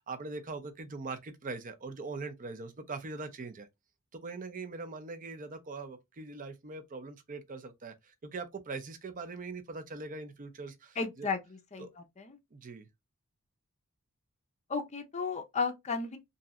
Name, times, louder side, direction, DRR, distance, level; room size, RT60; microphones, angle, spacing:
voice 1, 0.0-3.7 4.1-11.3 11.8-11.9 12.5-12.9, right 3 dB, 35° right, 0.5 m, -42 dB
voice 2, 11.0-12.4 14.7-16.2, left 4 dB, 30° left, 0.5 m, -34 dB
3.0 x 2.7 x 2.4 m
head